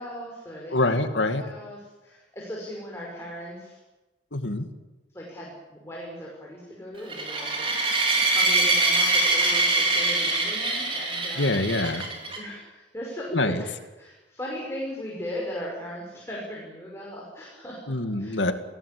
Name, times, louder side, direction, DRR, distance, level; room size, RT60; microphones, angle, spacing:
voice 1, 0.0-3.8 5.1-11.6 12.4-13.7 14.0-17.8 18.2-18.4, equal, 15° left, -3 dB, 5.6 m, -38 dB
voice 2, 0.7-1.4 4.3-4.7 11.4-12.1 13.3-13.6 17.9-18.5, left 2 dB, 90° left, 8 dB, 2.3 m, -25 dB
sound 1, 7.1-12.4, right 2 dB, 30° right, 4.9 m, -24 dB
28.5 x 18.0 x 8.6 m, 1.1 s
head